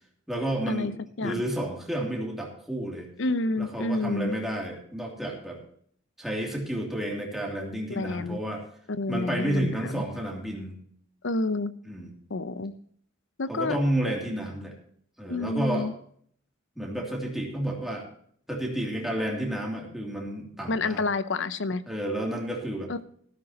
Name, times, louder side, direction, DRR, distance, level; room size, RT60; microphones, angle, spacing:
voice 1, 0.3-0.9 1.2-3.1 3.6-5.6 6.2-8.6 9.1-10.8 11.9-12.1 13.5-14.7 15.2-15.9 16.8-18.1 18.5-21.1 21.9-23.0, right 1 dB, ahead, -1 dB, 2.8 m, -31 dB
voice 2, 3.2-4.4 7.9-8.4 8.9-10.0 11.2-11.7 12.3-12.7 13.4-13.8 15.3-15.9 20.7-21.8 22.9-23.0, left 2 dB, 65° left, 14 dB, 0.7 m, -29 dB
13.5 x 13.0 x 2.9 m, 0.62 s
head